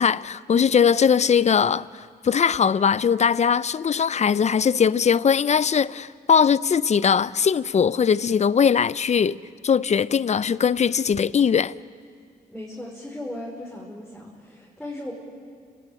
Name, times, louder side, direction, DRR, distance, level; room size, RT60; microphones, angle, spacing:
voice 1, 0.0-9.4 9.6-11.7, left 7 dB, 45° left, 0.6 m, -20 dB
voice 2, 12.5-15.1, left 1 dB, 5° left, 5.3 m, -37 dB
29.0 x 18.0 x 9.0 m
cardioid pair, 80°, 16 cm